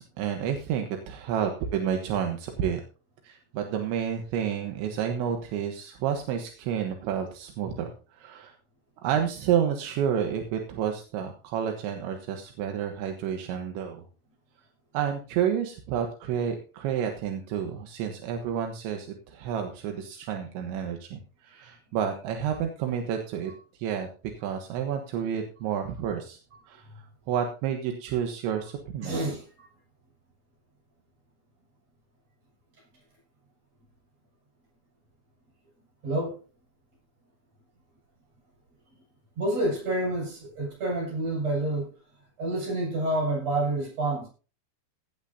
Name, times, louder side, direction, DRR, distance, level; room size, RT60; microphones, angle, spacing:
voice 1, 0.0-2.8 3.2-8.5 9.0-14.1 14.9-26.4 26.7-29.2, right 8 dB, 80° right, 3.6 m, -30 dB
voice 2, 29.0-29.7 36.0-36.4 39.4-41.9 42.4-44.3, right 2 dB, 35° right, 8.4 m, -28 dB
16.5 x 12.0 x 2.8 m
omnidirectional pair, 5.2 m